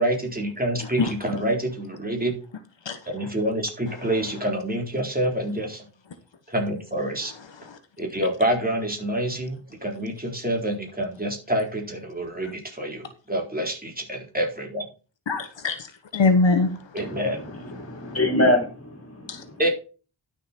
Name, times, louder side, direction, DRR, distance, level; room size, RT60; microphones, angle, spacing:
voice 1, 0.0-2.3 3.1-5.8 6.5-7.3 8.0-14.9 16.9-17.4 19.6-19.7, right 1 dB, 20° right, 4.1 m, -27 dB
voice 2, 15.3-15.9 16.1-16.7 19.3-19.4, left 3 dB, 65° left, 1.3 m, -21 dB
voice 3, 17.0-19.5, left 1 dB, 30° left, 4.3 m, -25 dB
11.5 x 7.0 x 4.4 m
wide cardioid pair, 75°, 48 cm